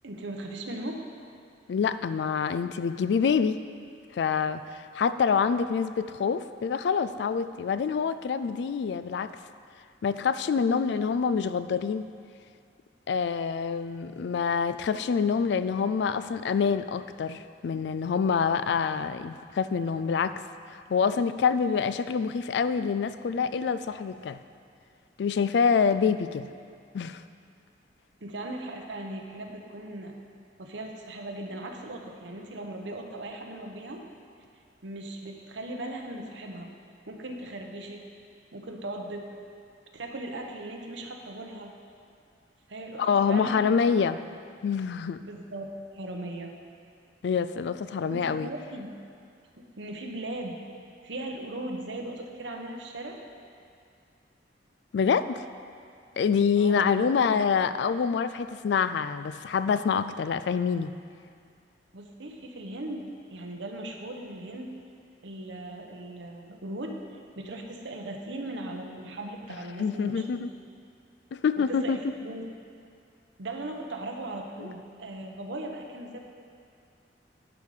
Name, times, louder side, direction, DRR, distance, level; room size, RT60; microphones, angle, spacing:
voice 1, 0.0-1.0 28.2-30.2 30.6-34.0 34.8-36.7 37.1-38.0 38.5-39.2 39.9-41.7 42.7-44.1 45.2-46.5 48.1-48.9 49.8-50.6 51.0-53.2 56.6-57.2 61.9-64.7 65.2-67.0 67.4-70.2 71.6-72.4 73.4-76.2, right 1 dB, 85° right, 2 dB, 0.9 m, -38 dB
voice 2, 1.7-3.6 4.1-9.4 10.0-12.1 13.1-20.4 20.7-24.4 25.2-26.5 26.9-27.2 43.0-44.2 44.6-45.3 47.2-48.5 54.9-55.4 56.2-60.9 69.8-70.5 71.3-72.1 74.6-74.7, left 6 dB, 70° left, 12 dB, 0.3 m, -26 dB
11.0 x 5.3 x 4.9 m, 2.3 s
head